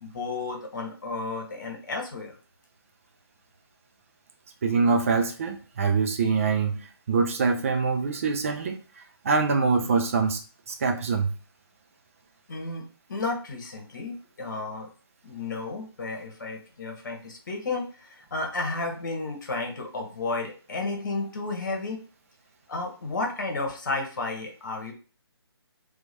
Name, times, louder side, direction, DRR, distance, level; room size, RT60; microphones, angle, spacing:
voice 1, 0.0-2.3 12.5-12.8 13.1-14.9 15.2-22.0 22.7-24.9, left 3 dB, 45° left, 2 dB, 1.1 m, -32 dB
voice 2, 4.6-8.8 9.2-10.4 10.7-11.3, right 4 dB, 30° right, 4 dB, 0.5 m, -24 dB
2.9 x 2.4 x 4.0 m, 0.37 s
figure-of-eight pair, 145°, 13 cm